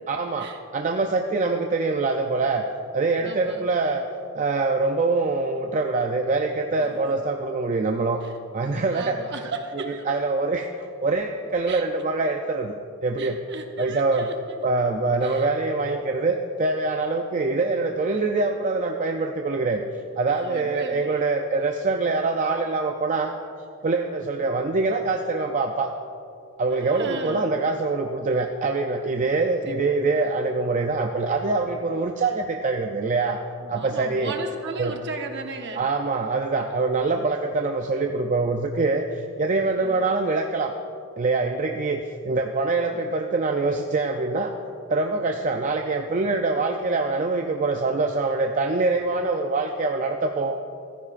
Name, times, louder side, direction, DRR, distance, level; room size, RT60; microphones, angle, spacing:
voice 1, 0.1-2.6 2.9-4.1 4.3-8.2 8.5-9.2 10.1-12.7 13.0-13.4 13.8-14.3 14.6-19.8 20.2-23.4 23.8-25.9 26.6-33.4 33.7-34.3 34.8-34.9 35.8-40.7 41.2-44.5 44.9-50.6, right 3 dB, 35° right, 4 dB, 0.4 m, -24 dB
voice 2, 3.2-3.6 6.7-7.2 8.2-8.4 8.9-10.2 11.7-11.8 13.2-14.6 15.2-15.5 20.2-21.3 23.8-24.0 26.7-27.6 30.1-30.2 33.6-35.8 39.8-40.0, right 3 dB, 50° right, 4 dB, 1.0 m, -36 dB
15.0 x 14.5 x 2.5 m, 2.6 s
head